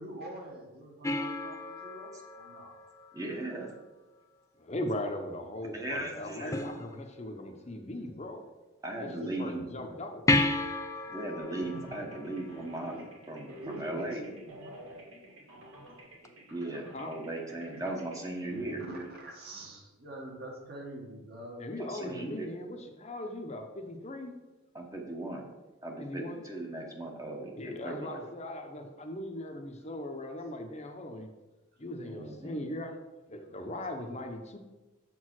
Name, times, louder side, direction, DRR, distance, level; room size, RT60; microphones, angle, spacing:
voice 1, 0.0-2.8 13.6-14.9 18.8-21.7, right 1 dB, 45° right, 0 dB, 1.4 m, -45 dB
sound 1, 1.0-3.7 6.5-7.5 10.3-13.2 16.2-16.3, left 2 dB, 15° left, 0.3 m, -33 dB
voice 2, 3.1-3.7 5.7-6.7 8.8-9.6 11.1-14.3 16.5-18.8 21.8-22.5 24.7-25.5 25.8-28.2 32.0-32.6, right 1 dB, 15° right, 1 dB, 0.9 m, -38 dB
voice 3, 4.6-8.5 9.0-10.3 16.9-17.1 21.6-24.3 26.0-26.4 27.6-31.3 31.8-33.0 33.3-34.6, left 1 dB, 30° left, 4 dB, 0.8 m, -39 dB
sound 2, 11.4-19.7, right 1 dB, 70° right, 2.3 m, -49 dB
7.0 x 4.6 x 6.0 m, 1.1 s
head